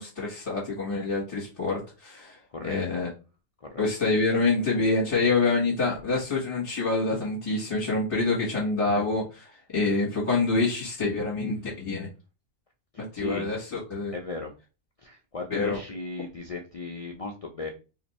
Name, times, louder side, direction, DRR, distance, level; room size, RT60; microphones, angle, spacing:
voice 1, 0.0-3.1 3.8-12.1 13.0-14.1 15.5-15.8, left 3 dB, 25° left, -6 dB, 1.3 m, -26 dB
voice 2, 2.5-3.0 3.6-3.9 12.9-13.5 14.1-14.5 15.0-17.7, left 3 dB, 60° left, 2 dB, 0.3 m, -36 dB
2.8 x 2.6 x 4.1 m, 0.31 s
omnidirectional pair, 1.2 m